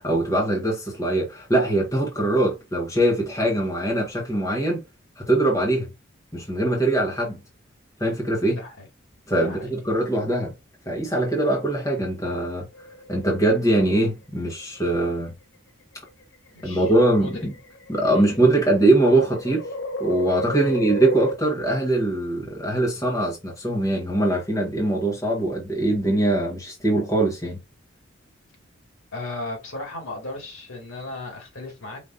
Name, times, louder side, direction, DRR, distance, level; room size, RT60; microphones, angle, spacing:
voice 1, 0.0-4.8 5.2-5.9 6.3-7.4 8.0-8.6 9.3-10.5 10.9-12.7 13.1-15.3 16.6-17.5 17.9-19.7 20.0-27.6, right 1 dB, 15° left, 1.2 m, -22 dB
voice 2, 8.5-8.9 9.4-9.7 16.5-16.9 17.2-17.4 18.1-18.2 20.6-20.7 29.1-32.0, left 2 dB, 85° left, 2.1 m, -35 dB
sound 1, 12.7-13.6 14.7-15.2 16.1-21.3, left 1 dB, 60° left, 0.7 m, -33 dB
5.1 x 3.0 x 2.6 m
head